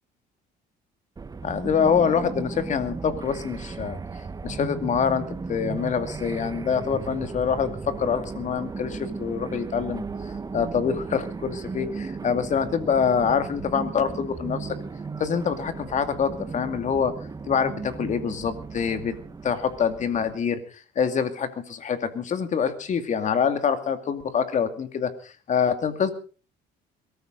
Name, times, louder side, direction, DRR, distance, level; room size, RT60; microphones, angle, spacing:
sound 1, 1.2-20.4, right 4 dB, 20° right, 1.2 m, -36 dB
voice 1, 1.4-4.0 4.4-14.8 15.2-17.1 17.5-19.1 19.4-26.1, left 7 dB, 45° left, 9 dB, 2.4 m, -25 dB
22.5 x 14.0 x 4.0 m, 0.37 s
cardioid pair, 110°, 17 cm